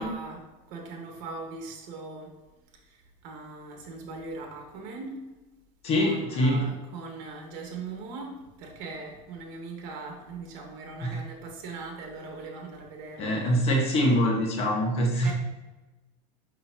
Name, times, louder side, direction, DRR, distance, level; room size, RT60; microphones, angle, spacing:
voice 1, 0.0-2.3 2.7-5.3 6.0-13.6 15.2-15.3, right 3 dB, 60° right, 2 dB, 1.6 m, -40 dB
voice 2, 5.8-6.6 11.0-11.2 13.2-15.3, equal, 40° left, -1 dB, 1.5 m, -24 dB
5.9 x 5.5 x 2.9 m, 1.1 s
supercardioid pair, 135°, 16 cm